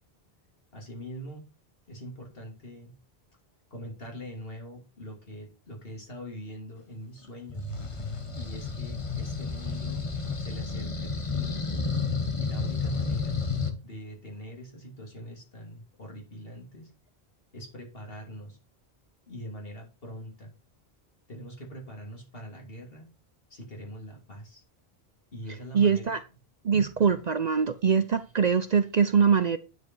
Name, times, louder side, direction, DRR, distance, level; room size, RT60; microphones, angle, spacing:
voice 1, 0.7-1.4 1.9-2.9 3.7-7.7 8.3-10.1 10.4-11.6 12.4-13.4 13.8-16.9 17.5-18.6 19.3-20.5 21.3-23.1 23.5-24.6 25.3-26.1, equal, 65° left, 1 dB, 3.2 m, -43 dB
sound 1, 7.5-13.7, left 4 dB, 30° left, 1.2 m, -31 dB
voice 2, 25.7-26.2 26.6-29.6, right 6 dB, 50° right, 12 dB, 0.6 m, -23 dB
9.4 x 5.2 x 4.6 m, 0.31 s
omnidirectional pair, 1.1 m